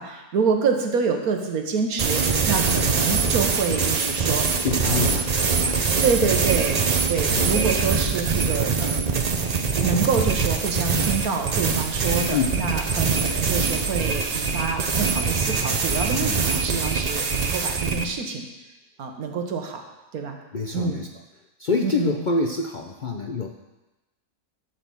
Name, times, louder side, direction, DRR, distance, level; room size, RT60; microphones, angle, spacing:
voice 1, 0.0-5.2 6.0-6.8 7.1-9.2 9.8-18.5 19.0-19.8 20.1-20.4 20.7-21.0 21.8-22.2, right 5 dB, 85° right, 4 dB, 1.6 m, -27 dB
sound 1, 2.0-18.1, right 5 dB, 45° right, 0.5 m, -23 dB
voice 2, 4.6-5.8 7.3-7.6 12.3-12.6 20.5-21.1 21.6-23.5, left 4 dB, 60° left, 3 dB, 0.5 m, -26 dB
12.5 x 4.1 x 6.9 m, 1.1 s
omnidirectional pair, 1.5 m